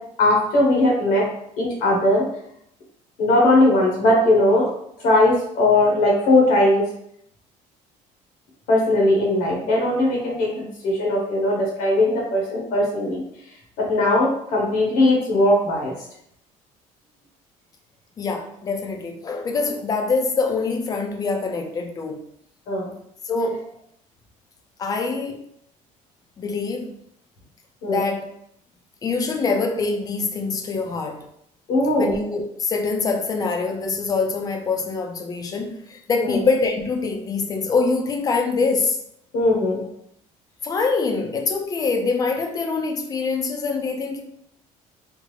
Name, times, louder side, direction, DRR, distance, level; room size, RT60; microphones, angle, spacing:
voice 1, 0.2-1.2 1.6-2.2 3.2-4.7 5.0-6.8 8.7-13.2 13.8-15.9 22.7-22.9 27.8-28.0 31.7-32.2 36.2-36.4 39.3-39.8, left 1 dB, 80° left, 1.2 m, -19 dB
voice 2, 18.2-22.2 23.2-23.6 24.8-25.4 26.4-26.9 27.9-28.3 29.0-31.2 32.0-39.0 40.6-44.2, left 4 dB, 25° left, 0.4 m, -24 dB
3.6 x 2.0 x 3.1 m
cardioid pair, 150°, 14 cm